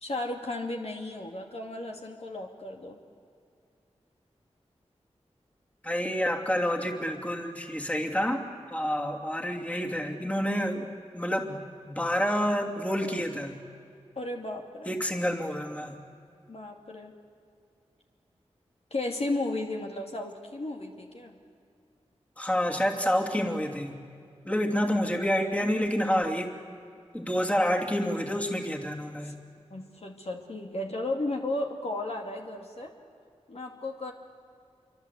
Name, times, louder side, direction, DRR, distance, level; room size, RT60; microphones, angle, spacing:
voice 1, 0.0-3.0 14.2-15.0 16.5-17.2 18.9-21.4 29.2-29.3 29.7-32.9 33.5-34.1, left 2 dB, 60° left, 1 dB, 2.5 m, -34 dB
voice 2, 5.8-8.4 8.7-10.9 11.1-13.6 14.9-16.0 22.4-24.0 24.4-26.5 27.1-29.4, equal, 10° left, 1 dB, 2.9 m, -28 dB
26.0 x 24.0 x 8.3 m, 2.3 s
cardioid pair, 45°, 12 cm